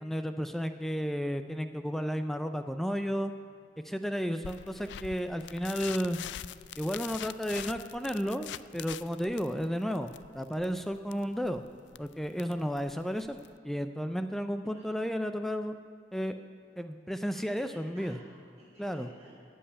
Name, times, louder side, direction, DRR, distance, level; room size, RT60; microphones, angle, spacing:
voice 1, 0.0-3.3 3.8-6.2 6.8-8.5 8.7-11.6 12.0-13.4 13.6-15.8 16.1-16.4 16.8-18.2 18.8-19.1, equal, ahead, 8 dB, 0.4 m, -33 dB
sound 1, 4.4-13.6, left 11 dB, 85° left, 0.3 m, -44 dB
voice 2, 14.6-15.0 17.3-19.3, right 1 dB, 15° right, -10 dB, 2.8 m, -55 dB
15.0 x 5.6 x 9.7 m, 2.1 s
head